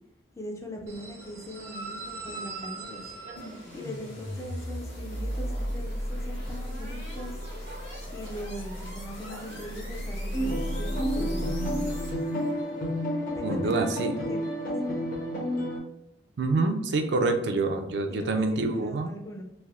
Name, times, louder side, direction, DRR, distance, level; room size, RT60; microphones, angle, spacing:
voice 1, 0.4-3.0 3.7-7.4 7.7-7.8 8.1-12.0 13.3-15.0 18.1-19.4, equal, 15° left, 1 dB, 0.4 m, -40 dB
sound 1, 0.9-10.5, right 2 dB, 90° right, 0.8 m, -44 dB
sound 2, 3.4-12.5, equal, 80° left, 1.1 m, -35 dB
sound 3, 10.3-15.8, equal, 50° left, 0.8 m, -31 dB
voice 2, 13.4-14.1 16.4-19.1, right 3 dB, 70° right, 5 dB, 0.4 m, -26 dB
3.3 x 2.5 x 2.4 m, 0.82 s
head